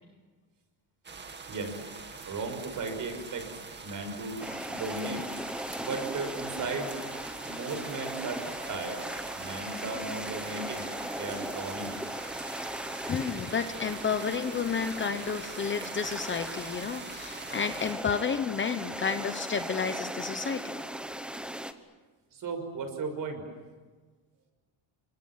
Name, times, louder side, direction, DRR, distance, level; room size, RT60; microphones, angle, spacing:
sound 1, 1.0-17.9, right 4 dB, 20° right, 2.2 m, -44 dB
voice 1, 1.5-1.8 2.2-5.3 5.8-6.9 7.4-9.0 9.3-10.9 11.1-12.0 22.3-23.4, right 3 dB, 40° right, 7 dB, 6.2 m, -36 dB
sound 2, 4.4-21.7, right 1 dB, ahead, 1.1 m, -38 dB
voice 2, 13.0-20.8, left 6 dB, 25° left, 9 dB, 1.0 m, -31 dB
29.0 x 26.0 x 7.5 m, 1.4 s
cardioid pair, 165°, 47 cm